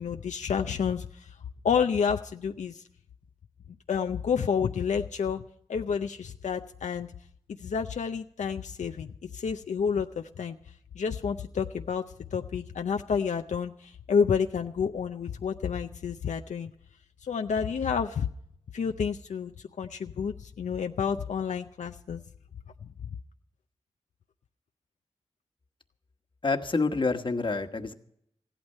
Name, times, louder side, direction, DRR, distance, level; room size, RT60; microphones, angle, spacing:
voice 1, 0.0-1.4 1.6-2.8 3.9-5.4 5.7-7.1 7.6-10.6 10.9-12.0 12.3-16.7 17.2-18.3 18.7-19.5 19.8-22.2, left 6 dB, 85° left, 6 dB, 0.6 m, -29 dB
voice 2, 26.4-27.9, left 3 dB, 45° left, 6 dB, 1.3 m, -27 dB
16.0 x 12.0 x 5.5 m, 0.70 s
wide cardioid pair, 70°, 12 cm